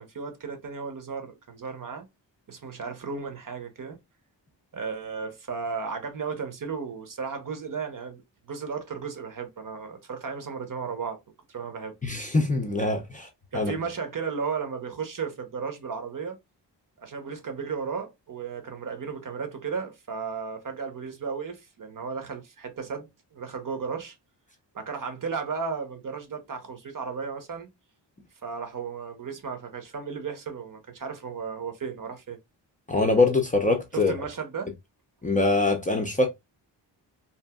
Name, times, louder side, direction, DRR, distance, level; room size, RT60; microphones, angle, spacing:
voice 1, 0.0-2.1 2.5-4.0 4.7-11.2 11.5-11.9 13.5-16.4 17.0-24.2 24.7-27.7 28.4-32.4 33.9-34.7, right 5 dB, 45° right, 0.7 m, -34 dB
voice 2, 12.0-13.3 13.5-13.7 32.9-34.1 35.2-36.3, left 3 dB, 20° left, 0.5 m, -23 dB
2.8 x 2.6 x 2.2 m
wide cardioid pair, 115°, 44 cm